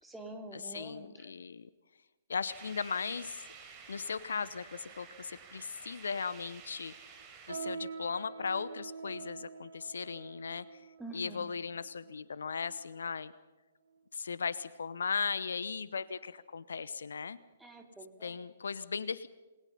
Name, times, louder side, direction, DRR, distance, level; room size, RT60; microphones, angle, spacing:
voice 1, 0.0-1.2 11.0-11.5 17.6-18.4, right 2 dB, 5° right, 2 dB, 3.3 m, -46 dB
voice 2, 0.5-1.7 2.3-3.4 3.9-6.9 7.5-10.7 11.1-13.3 14.1-17.4 18.2-19.3, left 5 dB, 65° left, 17 dB, 0.9 m, -37 dB
sound 1, 2.5-7.5, right 6 dB, 20° right, 5.0 m, -52 dB
sound 2, 7.5-13.2 13.8-14.0 14.7-15.0 15.4-15.6 16.3-16.4, right 5 dB, 60° right, 4.7 m, -46 dB
28.0 x 21.5 x 5.6 m, 1.2 s
figure-of-eight pair, 120°, 0 cm